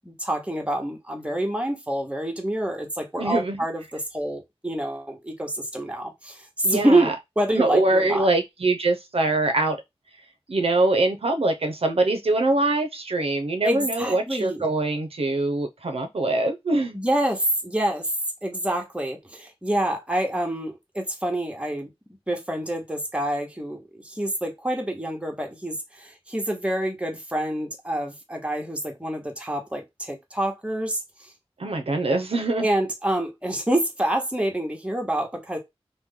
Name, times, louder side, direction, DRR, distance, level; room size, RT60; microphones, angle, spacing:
voice 1, 0.0-7.1 7.4-8.3 13.6-14.6 16.9-18.1 18.4-21.9 22.3-31.0 32.6-35.6, right 1 dB, 10° right, 1.0 m, -27 dB
voice 2, 3.2-3.6 6.6-7.1 7.5-9.8 10.5-17.0 31.6-32.7, right 2 dB, 70° right, 0.5 m, -23 dB
2.9 x 2.1 x 3.5 m
wide cardioid pair, 70°, 10 cm